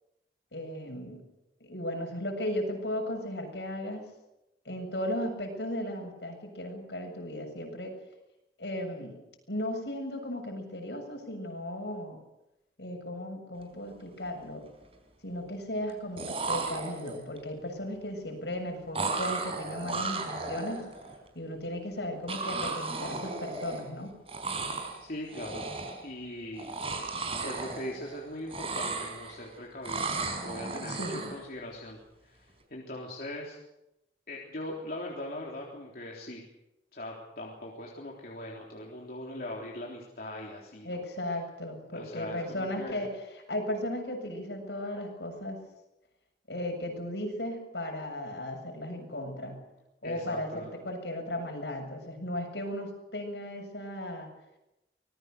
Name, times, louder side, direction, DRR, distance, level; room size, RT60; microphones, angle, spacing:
voice 1, 0.5-1.2 1.6-4.0 4.7-7.9 8.6-9.2 9.5-12.2 12.8-14.7 15.2-20.8 21.3-24.1 30.9-31.2 40.8-45.6 46.5-49.6 50.0-54.3, left 1 dB, 70° left, 3 dB, 7.4 m, -36 dB
sound 1, 13.7-13.9 14.3-14.9 15.9-16.0 16.2-17.4 18.9-21.1 22.3-24.0 24.3-25.0 25.3-26.1 26.5-28.2 28.4-29.5 29.8-31.4, right 3 dB, 30° right, 4.5 m, -35 dB
voice 2, 25.0-25.6 26.0-26.8 27.4-30.1 30.4-32.0 32.2-33.6 34.3-36.4 36.9-41.0 41.9-43.0 50.0-50.7, left 1 dB, 55° left, -2 dB, 3.6 m, -40 dB
25.5 x 20.5 x 6.7 m, 0.91 s
head